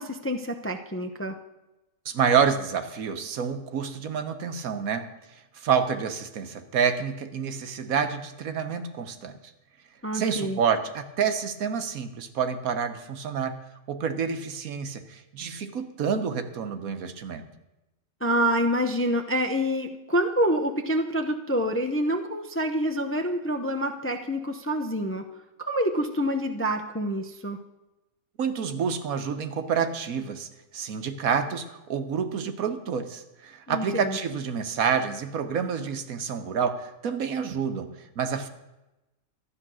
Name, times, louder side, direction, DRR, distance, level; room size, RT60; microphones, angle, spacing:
voice 1, 0.0-1.4 10.0-10.6 18.2-25.3 25.6-27.6 33.7-34.2, equal, 15° left, 4 dB, 0.5 m, -27 dB
voice 2, 2.0-5.1 5.5-9.4 10.1-13.5 13.9-17.5 28.4-30.5 30.7-38.5, right 6 dB, 80° right, 8 dB, 1.4 m, -28 dB
13.0 x 9.6 x 6.2 m, 0.99 s
omnidirectional pair, 1.5 m